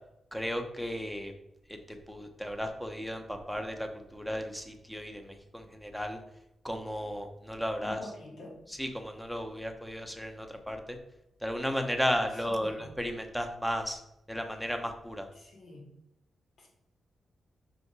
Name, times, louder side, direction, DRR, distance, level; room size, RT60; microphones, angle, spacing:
voice 1, 0.3-1.3 1.9-6.2 6.6-8.0 8.8-11.0 11.4-14.0 14.3-15.3, equal, ahead, 5 dB, 1.0 m, -34 dB
voice 2, 7.8-8.6 12.3-12.9 15.3-15.9 16.6-16.7, left 1 dB, 75° left, -2 dB, 2.8 m, -47 dB
5.8 x 5.2 x 4.7 m, 0.85 s
cardioid pair, 110°, 0 cm